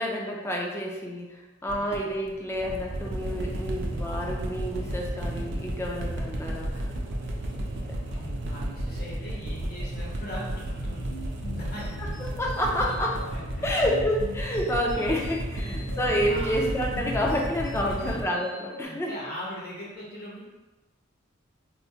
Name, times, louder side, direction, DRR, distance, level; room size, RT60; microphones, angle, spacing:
voice 1, 0.0-6.8 12.0-13.1 13.6-19.1, equal, 15° left, -1 dB, 0.4 m, -29 dB
sound 1, 1.7-18.2, right 1 dB, 60° right, 0.5 m, -33 dB
voice 2, 8.0-11.0 11.5-12.1 12.8-12.9 13.3-13.7 14.8-15.1 15.7-15.8 16.3-16.6 17.9-18.2 18.8-20.4, equal, 50° left, -6 dB, 1.1 m, -40 dB
sound 2, 10.6-18.8, left 2 dB, 80° left, 0.4 m, -46 dB
4.3 x 2.1 x 2.7 m, 1.1 s
head